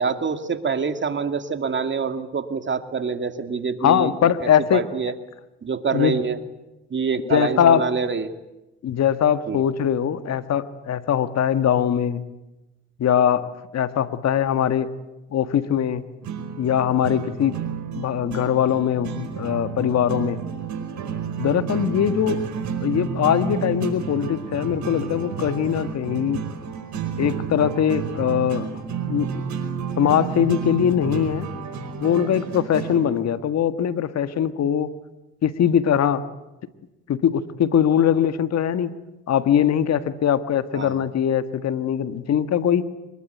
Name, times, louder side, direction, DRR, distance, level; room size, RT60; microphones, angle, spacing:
voice 1, 0.0-5.1 5.6-6.4 6.9-8.3 9.5-9.6 40.7-40.9, right 5 dB, 40° right, 8 dB, 2.4 m, -26 dB
voice 2, 3.8-4.8 5.9-6.2 7.3-7.9 8.8-12.2 13.0-14.9 15.3-16.0 16.6-17.5 18.0-20.4 21.4-22.4 22.8-26.4 27.2-28.7 29.0-29.5 30.0-31.5 32.0-34.9 35.4-36.2 37.1-38.9 39.3-42.9, left 9 dB, 55° left, 10 dB, 1.8 m, -21 dB
sound 1, 16.2-33.2, right 7 dB, 65° right, 5.1 m, -31 dB
24.5 x 21.0 x 9.3 m, 0.98 s
supercardioid pair, 65°, 31 cm